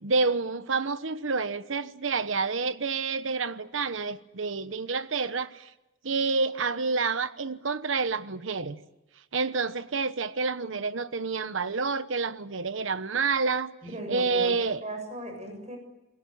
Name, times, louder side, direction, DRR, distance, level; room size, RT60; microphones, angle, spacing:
voice 1, 0.0-5.7 6.0-8.8 9.3-13.7 14.1-14.8, right 4 dB, 75° right, 1.1 m, -28 dB
voice 2, 13.8-15.8, right 1 dB, 35° right, 7.3 m, -38 dB
28.0 x 21.5 x 8.8 m
head